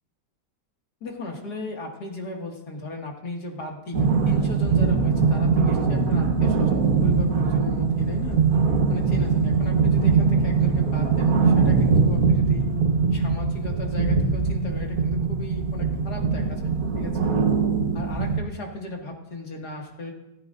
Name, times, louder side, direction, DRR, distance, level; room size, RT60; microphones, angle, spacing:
voice 1, 1.0-8.4 8.9-12.7 13.1-17.2 17.9-20.1, left 2 dB, 75° left, 0 dB, 2.7 m, -36 dB
sound 1, 3.9-18.4, right 5 dB, 60° right, 1.8 m, -21 dB
18.5 x 15.0 x 2.7 m, 0.93 s
omnidirectional pair, 1.7 m